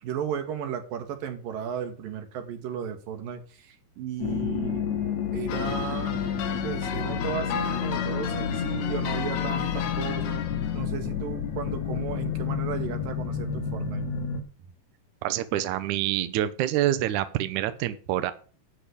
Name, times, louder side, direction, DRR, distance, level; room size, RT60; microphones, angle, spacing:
voice 1, 0.0-4.8 5.3-6.2 6.6-10.4 10.7-14.1, right 8 dB, 90° right, 6 dB, 3.4 m, -35 dB
sound 1, 4.2-14.4, left 7 dB, 60° left, 3.3 m, -30 dB
sound 2, 5.5-10.9, left 7 dB, 80° left, 2.8 m, -35 dB
voice 2, 15.2-18.3, right 13 dB, 70° right, 12 dB, 2.1 m, -26 dB
12.0 x 5.1 x 8.3 m, 0.39 s
omnidirectional pair, 3.9 m